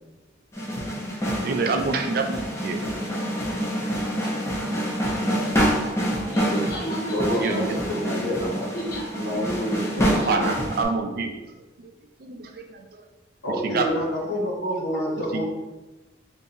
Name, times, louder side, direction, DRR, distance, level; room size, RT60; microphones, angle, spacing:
sound 1, 0.5-10.8, equal, 15° left, 0.5 m, -27 dB
voice 1, 1.4-2.8 4.2-4.4 4.8-5.0 6.3-6.4 7.4-7.8 9.3-9.5 10.1-11.4 11.8-11.9 12.2-12.8 13.6-13.9 15.3-15.4, right 4 dB, 55° right, 4 dB, 0.4 m, -27 dB
voice 2, 6.2-7.7 8.0-9.0 9.9-10.5, equal, 60° left, -6 dB, 1.2 m, -31 dB
voice 3, 7.1-8.6 9.1-10.1 13.4-15.4, equal, 75° left, -5 dB, 1.2 m, -28 dB
2.8 x 2.6 x 3.9 m, 1.1 s
head